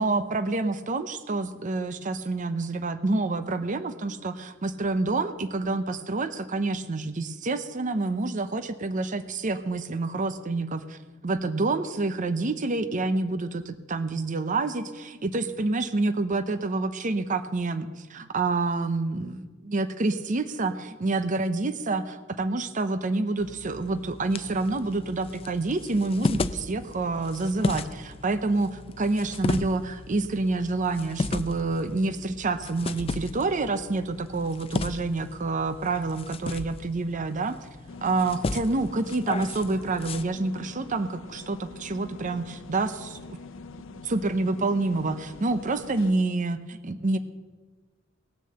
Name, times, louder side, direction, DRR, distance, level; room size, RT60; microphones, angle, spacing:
voice 1, 0.0-11.0 11.2-37.6 38.0-43.4 43.7-47.2, right 3 dB, 40° right, 11 dB, 0.7 m, -28 dB
sound 1, 23.4-40.2, left 3 dB, 30° left, 0.4 m, -35 dB
sound 2, 37.9-46.1, left 3 dB, 75° left, 0.7 m, -44 dB
18.5 x 6.5 x 7.8 m, 1.3 s
head